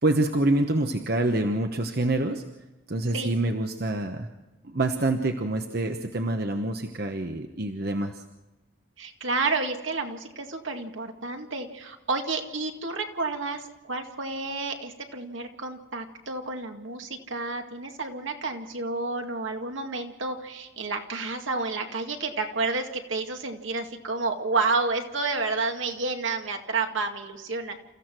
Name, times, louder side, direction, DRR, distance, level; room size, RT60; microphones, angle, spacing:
voice 1, 0.0-2.4 2.9-4.3 4.7-8.1, right 2 dB, 50° right, 5 dB, 1.1 m, -26 dB
voice 2, 9.0-27.8, right 3 dB, 70° right, 4 dB, 2.2 m, -30 dB
29.0 x 15.0 x 6.1 m, 1.0 s
head